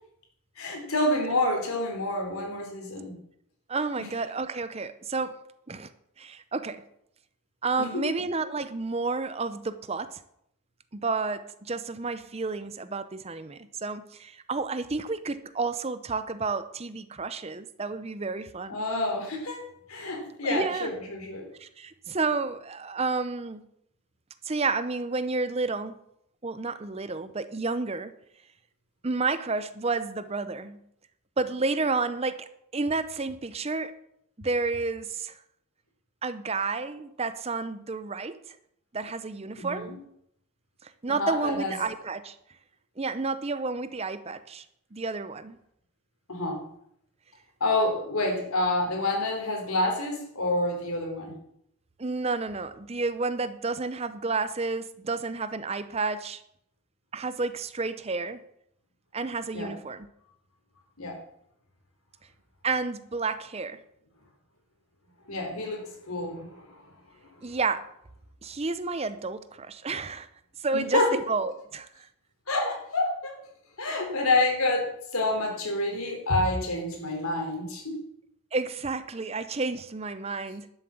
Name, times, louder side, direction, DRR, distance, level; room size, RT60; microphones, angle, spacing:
voice 1, 0.6-3.1 4.0-4.1 7.8-8.1 18.7-21.5 39.6-40.0 41.1-41.7 46.3-46.6 47.6-51.3 59.5-59.7 61.0-61.2 65.3-66.9 70.7-71.1 72.5-73.3 73.8-78.0, left 2 dB, 85° left, 2 dB, 3.6 m, -28 dB
voice 2, 3.7-5.4 5.7-5.9 6.2-6.8 7.6-10.2 10.9-18.8 20.4-20.9 21.6-23.7 24.4-26.0 26.4-28.1 29.0-30.8 31.4-33.9 34.4-35.3 36.2-38.6 38.9-39.9 40.8-42.4 43.0-44.7 44.9-45.6 52.0-56.4 57.1-58.4 59.1-60.1 62.6-63.8 67.4-67.9 68.4-70.3 70.6-72.1 72.6-72.7 78.5-80.7, right 3 dB, 30° right, 13 dB, 0.6 m, -31 dB
11.5 x 7.6 x 7.1 m, 0.73 s
head